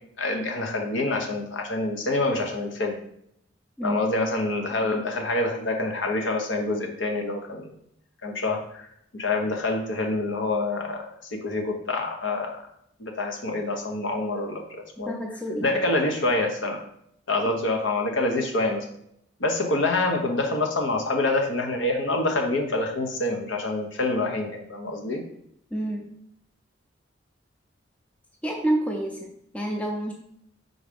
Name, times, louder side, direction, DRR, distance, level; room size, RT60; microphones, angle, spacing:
voice 1, 0.2-3.0 3.8-7.7 8.2-8.9 9.1-11.0 11.4-12.6 13.0-15.2 15.6-16.8 17.3-18.9 19.4-25.2, left 2 dB, 80° left, 3 dB, 1.0 m, -26 dB
voice 2, 15.1-15.8 25.7-26.1 28.4-30.1, right 1 dB, 5° left, 1 dB, 0.5 m, -29 dB
4.9 x 3.9 x 5.2 m, 0.73 s
head